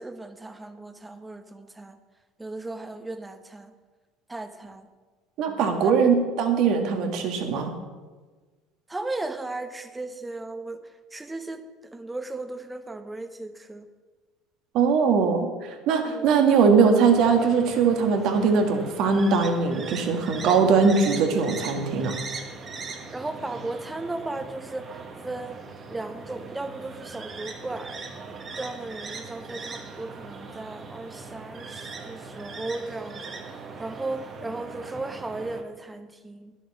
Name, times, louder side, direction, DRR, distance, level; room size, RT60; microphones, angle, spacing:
voice 1, 0.0-2.0 2.4-3.7 4.3-4.9 5.5-5.9 8.9-10.8 11.1-11.6 11.9-13.9 16.0-16.3 23.1-25.6 25.9-36.5, right 2 dB, 15° right, 8 dB, 1.1 m, -36 dB
voice 2, 5.4-7.7 14.7-22.1, right 5 dB, 60° right, 5 dB, 1.8 m, -21 dB
sound 1, 17.0-35.6, right 4 dB, 35° right, 1.5 m, -40 dB
11.0 x 7.2 x 7.2 m, 1.4 s
hypercardioid pair, 75°, 0 cm